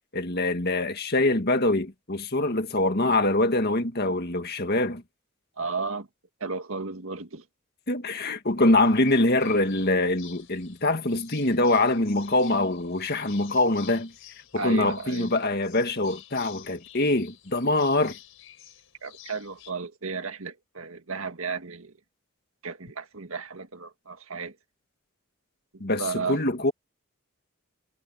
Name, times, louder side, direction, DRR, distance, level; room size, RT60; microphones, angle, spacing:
voice 1, 0.1-5.0 7.9-14.1 14.5-18.2 25.8-26.7, left 2 dB, 50° left, 2.0 m, -24 dB
voice 2, 5.6-6.1 6.4-7.5 14.6-15.3 19.0-21.9 22.6-24.6 25.7-26.4, right 4 dB, 75° right, 1.9 m, -34 dB
sound 1, 8.8-19.7, left 12 dB, 70° left, 4.9 m, -50 dB
head